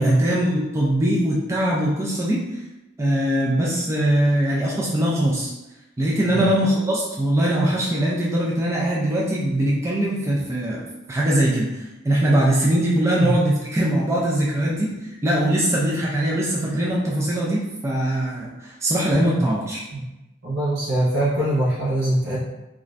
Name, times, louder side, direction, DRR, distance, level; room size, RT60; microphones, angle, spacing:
voice 1, 0.0-2.5 3.0-5.5 6.0-10.8 11.1-14.9 15.2-19.8, right 1 dB, 15° right, -5 dB, 0.3 m, -21 dB
voice 2, 20.4-22.4, right 1 dB, 55° right, -9 dB, 0.8 m, -22 dB
2.4 x 2.4 x 3.1 m, 0.98 s
head